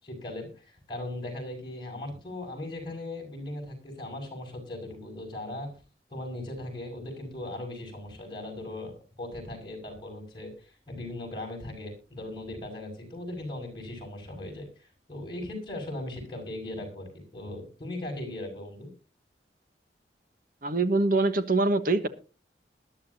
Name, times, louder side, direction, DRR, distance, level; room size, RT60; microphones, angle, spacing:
voice 1, 0.0-5.7 6.1-18.9, left 1 dB, 25° left, 1 dB, 6.5 m, -38 dB
voice 2, 20.6-22.1, right 3 dB, 50° right, 11 dB, 1.3 m, -24 dB
20.5 x 11.5 x 2.8 m, 0.33 s
head